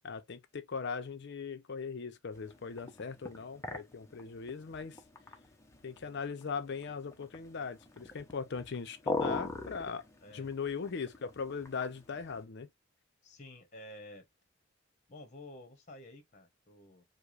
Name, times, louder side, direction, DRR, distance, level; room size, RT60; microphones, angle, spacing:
voice 1, 0.0-5.0 5.8-10.0 10.3-12.7, left 5 dB, 60° left, 0.6 m, -39 dB
sound 1, 2.3-12.4, left 2 dB, 15° left, 0.6 m, -42 dB
voice 2, 10.2-10.5 13.2-14.3 15.1-17.0, left 1 dB, 35° left, 0.9 m, -51 dB
4.7 x 2.1 x 2.4 m
head